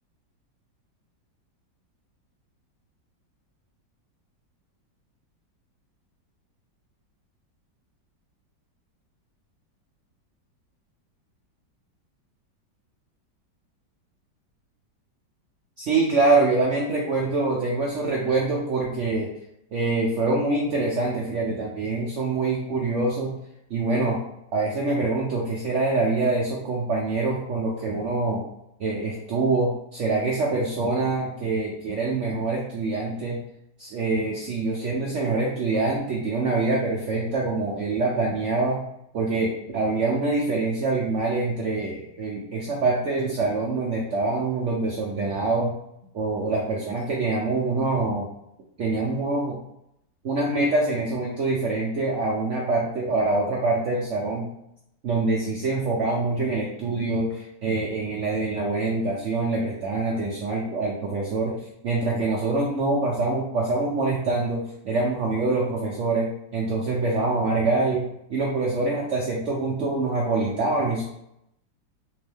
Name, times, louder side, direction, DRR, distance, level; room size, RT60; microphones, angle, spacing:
voice 1, 15.8-19.3 19.7-23.3 23.7-24.2 24.5-28.4 28.8-33.4 33.8-38.8 39.1-45.7 46.1-48.3 48.8-49.6 50.2-54.5 55.0-61.6 61.8-71.0, right 3 dB, 70° right, -2 dB, 0.7 m, -25 dB
3.6 x 3.0 x 3.4 m, 0.79 s
omnidirectional pair, 1.9 m